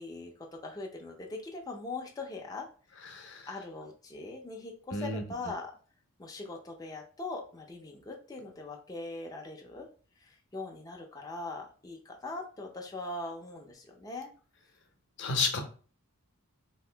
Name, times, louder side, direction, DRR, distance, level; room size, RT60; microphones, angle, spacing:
voice 1, 0.0-2.7 3.5-5.7 6.2-9.9 10.2-14.3, left 2 dB, 15° left, 0 dB, 0.4 m, -41 dB
voice 2, 3.1-3.5 4.9-5.2 15.2-15.6, left 4 dB, 55° left, 4 dB, 0.7 m, -31 dB
2.8 x 2.5 x 3.2 m, 0.40 s
head